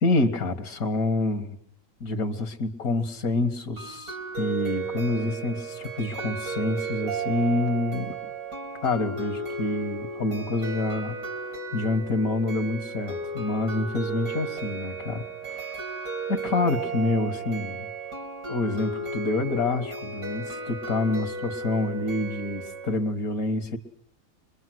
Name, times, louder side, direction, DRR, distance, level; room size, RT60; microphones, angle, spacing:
voice 1, 0.0-1.6 2.0-8.2 8.8-11.2 11.7-15.7 16.3-17.9 18.5-23.8, left 2 dB, 85° left, 7 dB, 2.2 m, -27 dB
sound 1, 3.8-23.0, right 3 dB, 80° right, 3.5 m, -34 dB
24.5 x 22.5 x 7.7 m, 0.67 s
omnidirectional pair, 1.5 m